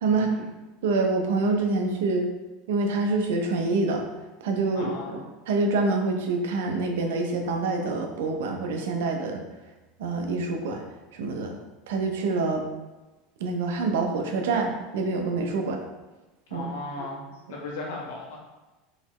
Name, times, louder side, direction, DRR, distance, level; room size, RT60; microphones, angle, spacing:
voice 1, 0.0-0.5 0.8-2.3 2.7-4.0 4.4-5.2 5.5-9.4 10.0-10.8 11.1-11.6 11.9-12.6 13.4-15.8 16.5-16.7, right 3 dB, 85° right, 3 dB, 0.6 m, -26 dB
voice 2, 4.7-5.2 16.5-18.4, left 2 dB, 80° left, -2 dB, 1.2 m, -37 dB
3.9 x 3.1 x 3.0 m, 1.1 s
supercardioid pair, 160°, 0 cm